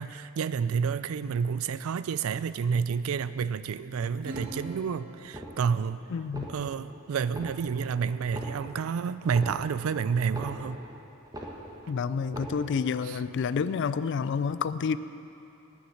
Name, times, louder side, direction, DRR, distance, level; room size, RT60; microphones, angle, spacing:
voice 1, 0.0-6.0 6.5-10.8 13.1-13.2, right 6 dB, 75° right, 15 dB, 0.4 m, -29 dB
Acoustic guitar / Strum, 4.2-7.1, right 1 dB, 45° right, 1.4 m, -45 dB
sound 1, 4.3-4.9 5.2-5.9 6.2-6.9 7.2-7.9 8.2-10.9 11.2-11.9 12.2-12.9 13.2-13.4, right 1 dB, 20° right, 1.2 m, -42 dB
voice 2, 6.1-6.5 11.9-15.0, left 6 dB, 60° left, 15 dB, 0.4 m, -29 dB
9.6 x 9.4 x 6.5 m, 2.7 s
head